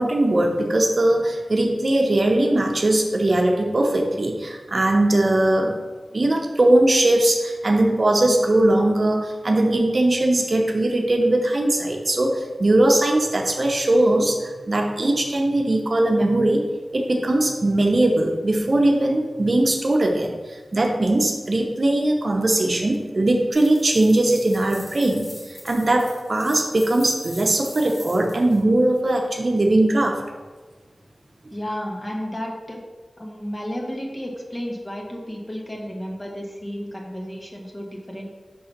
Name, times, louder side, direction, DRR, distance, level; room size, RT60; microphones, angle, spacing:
voice 1, 0.0-5.8 6.1-16.6 16.9-30.2, right 1 dB, 50° right, 2 dB, 0.8 m, -20 dB
sound 1, 23.5-28.6, left 1 dB, 50° left, 1.8 m, -42 dB
voice 2, 31.5-32.8 33.2-38.3, equal, 25° left, -1 dB, 1.3 m, -32 dB
5.5 x 3.8 x 5.8 m, 1.3 s
wide cardioid pair, 90°, 0 cm